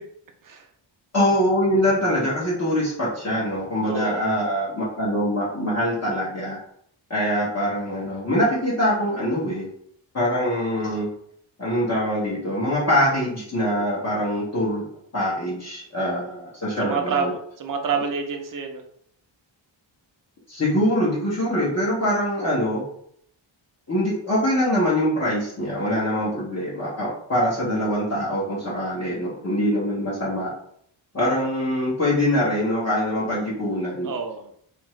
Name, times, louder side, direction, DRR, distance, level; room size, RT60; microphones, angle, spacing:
voice 1, 1.1-6.6 7.1-9.7 10.1-11.1 11.6-14.8 15.1-17.3 20.5-22.8 23.9-30.5 31.1-34.1, equal, 35° left, -8 dB, 0.8 m, -23 dB
voice 2, 3.8-4.2 16.8-18.8 34.0-34.5, right 6 dB, 45° right, 5 dB, 0.4 m, -28 dB
2.8 x 2.4 x 3.0 m, 0.68 s
wide cardioid pair, 160°, 47 cm